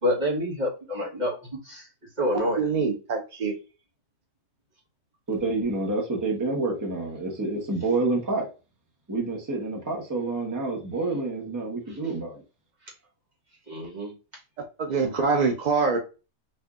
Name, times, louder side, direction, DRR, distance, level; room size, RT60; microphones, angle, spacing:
voice 1, 0.0-1.8 2.2-2.7 13.7-14.1, equal, 35° right, 1.3 m, -27 dB
voice 2, 2.6-3.5 14.8-16.0, right 4 dB, 70° right, 0.4 m, -24 dB
voice 3, 5.3-8.5 9.1-12.4, right 3 dB, 15° right, 0.8 m, -28 dB
4.3 x 2.6 x 2.4 m
omnidirectional pair, 1.5 m